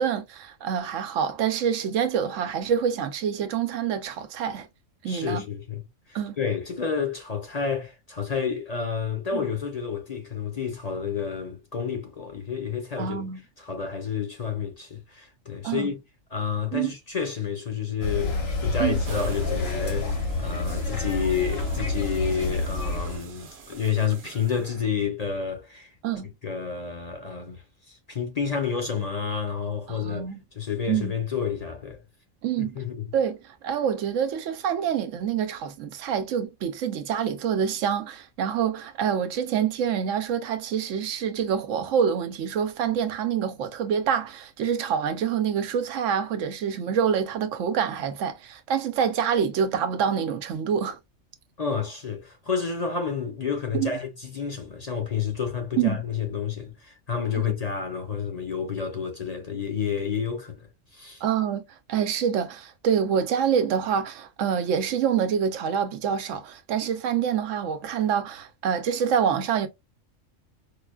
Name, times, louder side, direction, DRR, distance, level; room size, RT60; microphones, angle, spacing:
voice 1, 0.0-4.7 5.0-5.4 6.1-6.4 9.3-9.4 13.0-13.4 15.6-15.9 16.7-16.9 18.8-19.0 26.0-26.3 29.9-30.4 30.9-31.1 32.4-32.8 33.1-51.0 53.7-54.0 55.8-56.0 57.3-57.5 61.2-69.7, right 8 dB, 80° right, 1.0 m, -26 dB
voice 2, 5.0-13.2 13.6-16.0 16.3-25.9 26.4-30.3 30.5-32.0 32.6-33.1 51.6-61.2, left 6 dB, 40° left, 0.7 m, -30 dB
sound 1, 18.0-23.2, left 3 dB, 55° left, 1.2 m, -28 dB
sound 2, 19.0-25.1, right 6 dB, 50° right, 0.7 m, -44 dB
4.8 x 2.3 x 2.2 m
omnidirectional pair, 1.3 m